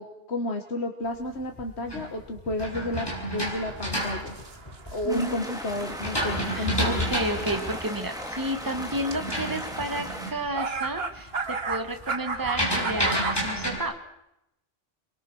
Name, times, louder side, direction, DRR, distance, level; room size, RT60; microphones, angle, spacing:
voice 1, 0.0-4.3 4.9-7.1, left 1 dB, 85° left, 4 dB, 2.0 m, -31 dB
sound 1, 1.4-5.2 5.7-10.5 10.8-11.3 11.5-13.8, equal, 20° left, 7.6 m, -30 dB
sound 2, 3.4-8.5 9.1-9.3 10.1-10.2 10.5-13.4, right 4 dB, 70° right, 1.9 m, -34 dB
voice 2, 5.0-5.5 6.5-13.9, right 1 dB, 20° right, 6 dB, 1.9 m, -31 dB
sound 3, 5.1-10.3, equal, 5° right, 3.6 m, -37 dB
27.5 x 23.5 x 6.3 m, 0.86 s
omnidirectional pair, 1.1 m